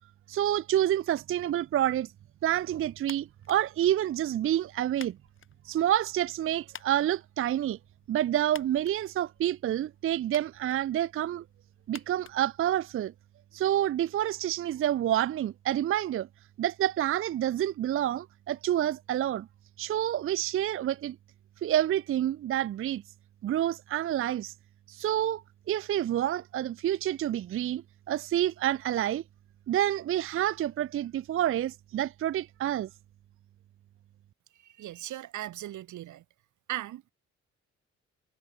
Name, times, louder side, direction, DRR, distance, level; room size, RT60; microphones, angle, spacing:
voice 1, 0.3-2.1 2.4-5.2 5.6-7.8 8.1-11.4 11.9-13.1 13.5-16.3 16.6-19.5 19.8-21.2 21.6-23.0 23.4-24.5 24.9-29.2 29.7-32.9, right 12 dB, 45° right, 0.5 m, -28 dB
sound 1, 3.0-13.2, left 7 dB, 40° left, 1.8 m, -53 dB
voice 2, 34.6-36.2 36.7-37.1, right 13 dB, 75° right, 1.6 m, -38 dB
cardioid pair, 90°, 30 cm